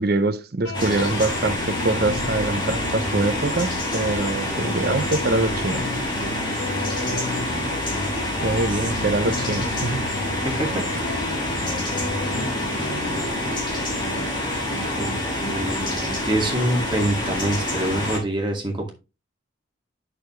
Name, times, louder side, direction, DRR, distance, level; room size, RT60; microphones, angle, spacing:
voice 1, 0.0-5.9 8.4-10.0, right 2 dB, 50° right, 0.7 m, -24 dB
Guitar, 0.6-17.8, left 2 dB, 65° left, 1.5 m, -33 dB
sound 1, 0.7-18.2, left 1 dB, 25° left, 3.1 m, -27 dB
voice 2, 10.4-10.8 15.0-15.1 15.5-18.9, right 1 dB, 25° right, 2.1 m, -25 dB
8.5 x 6.5 x 3.2 m
head